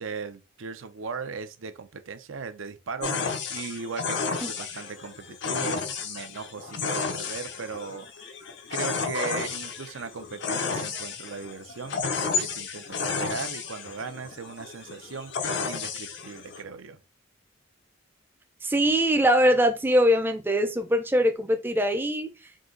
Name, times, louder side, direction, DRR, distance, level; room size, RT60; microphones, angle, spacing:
voice 1, 0.0-8.3 8.7-17.0, right 5 dB, 80° right, 0.6 m, -38 dB
sound 1, 3.0-16.6, left 5 dB, 60° left, 0.6 m, -32 dB
voice 2, 18.6-22.3, equal, 10° right, 0.5 m, -22 dB
3.8 x 2.8 x 3.8 m
head